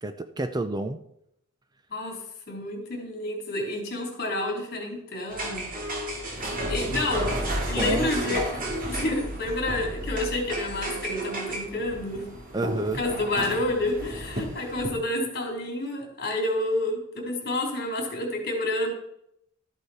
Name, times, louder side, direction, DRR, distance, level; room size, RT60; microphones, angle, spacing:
voice 1, 0.0-1.0 6.9-7.4 7.8-8.4 12.5-13.0, right 2 dB, 20° right, 9 dB, 0.5 m, -30 dB
voice 2, 2.5-5.7 6.7-7.3 7.7-8.4 8.7-12.3 13.0-18.9, left 1 dB, 50° left, 1 dB, 3.3 m, -29 dB
sound 1, 5.3-14.9, right 1 dB, 40° right, 2.6 m, -32 dB
13.0 x 8.2 x 4.2 m, 0.76 s
head